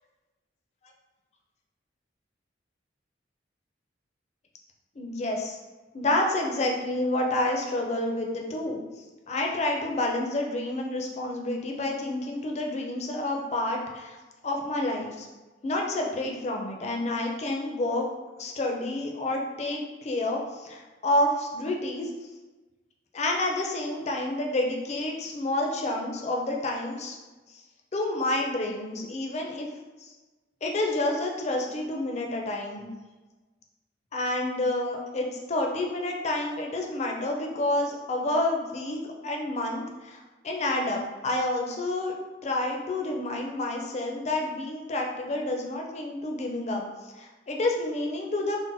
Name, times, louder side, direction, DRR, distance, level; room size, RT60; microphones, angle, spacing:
voice 1, 5.0-5.6 5.9-8.8 9.3-14.2 14.4-15.3 15.6-18.1 18.4-22.1 23.1-27.2 27.5-27.6 27.9-29.7 30.0-30.1 30.6-32.9 34.1-42.2 42.4-48.6, left 1 dB, 35° left, 1 dB, 0.4 m, -29 dB
2.5 x 2.0 x 3.8 m, 1.2 s
head